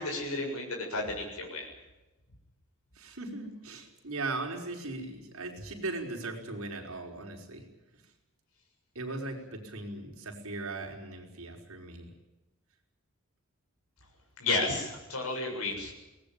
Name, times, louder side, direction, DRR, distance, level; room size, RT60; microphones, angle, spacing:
voice 1, 0.0-1.7 14.4-15.9, left 2 dB, 85° left, 1 dB, 7.1 m, -32 dB
voice 2, 3.0-7.7 9.0-12.1, right 2 dB, 75° right, 2 dB, 5.2 m, -38 dB
23.5 x 19.5 x 8.9 m, 1.1 s
head